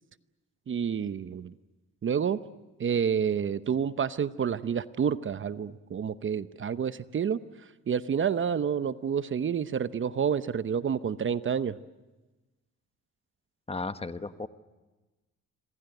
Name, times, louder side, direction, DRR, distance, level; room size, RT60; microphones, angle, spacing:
voice 1, 0.7-1.5 2.0-2.4 2.8-7.4 7.9-11.8, right 7 dB, 40° right, 14 dB, 0.8 m, -29 dB
voice 2, 13.7-14.5, left 3 dB, 20° left, 11 dB, 1.2 m, -34 dB
27.0 x 21.5 x 8.0 m, 1.1 s
cardioid pair, 90°, 30 cm